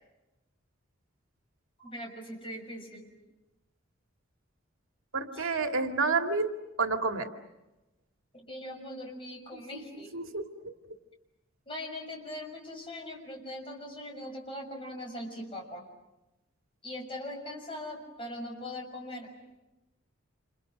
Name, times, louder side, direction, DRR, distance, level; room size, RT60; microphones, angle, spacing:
voice 1, 1.8-3.1 5.3-5.6 8.3-10.1 11.7-15.9 16.8-19.3, left 1 dB, 25° left, 2 dB, 6.3 m, -41 dB
voice 2, 5.1-6.5 6.8-7.3 10.1-10.4, right 4 dB, 85° right, 5 dB, 2.3 m, -29 dB
29.5 x 28.0 x 6.5 m, 1.0 s
head